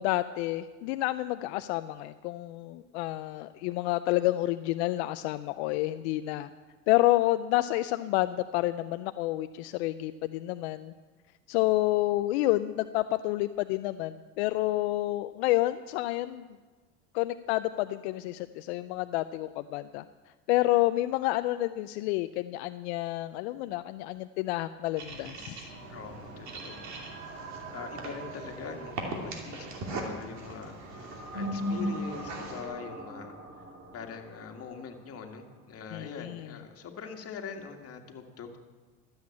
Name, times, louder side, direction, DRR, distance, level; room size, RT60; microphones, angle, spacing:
voice 1, 0.0-6.5 6.9-10.9 11.5-16.4 17.1-20.0 20.5-25.7 35.9-36.5, left 17 dB, 85° left, 11 dB, 0.5 m, -29 dB
sound 1, 25.0-32.6, right 1 dB, 60° right, 2.8 m, -38 dB
sound 2, 25.7-35.8, right 3 dB, 40° right, 3.4 m, -46 dB
voice 2, 25.9-26.9 27.7-33.4 33.9-38.6, left 6 dB, 45° left, 3 dB, 1.9 m, -43 dB
13.0 x 8.0 x 8.5 m, 1.3 s
supercardioid pair, 85°, 32 cm